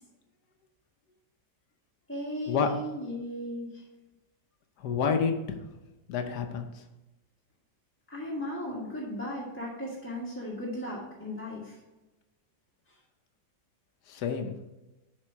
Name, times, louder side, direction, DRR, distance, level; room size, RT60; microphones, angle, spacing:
voice 1, 2.1-3.8 8.1-11.8, left 1 dB, 10° left, -7 dB, 1.4 m, -36 dB
voice 2, 4.8-5.6 6.1-6.8 14.1-14.6, left 6 dB, 70° left, 6 dB, 1.3 m, -29 dB
7.5 x 4.3 x 5.8 m, 1.0 s
omnidirectional pair, 1.8 m